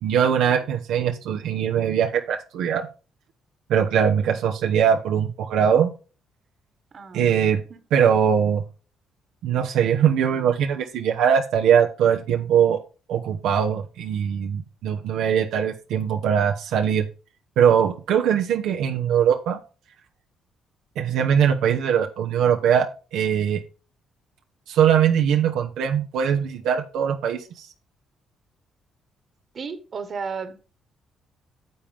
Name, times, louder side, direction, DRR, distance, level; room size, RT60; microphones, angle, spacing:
voice 1, 0.0-2.9 3.7-5.9 7.1-7.6 7.9-8.6 9.4-12.8 13.1-17.1 17.6-19.6 21.0-22.9 23.1-23.6 24.7-27.7, right 8 dB, 85° right, 4 dB, 0.9 m, -21 dB
voice 2, 6.9-7.8 29.5-30.6, right 5 dB, 50° right, 10 dB, 1.5 m, -34 dB
9.7 x 7.3 x 3.5 m, 0.34 s
cardioid pair, 90°, 0 cm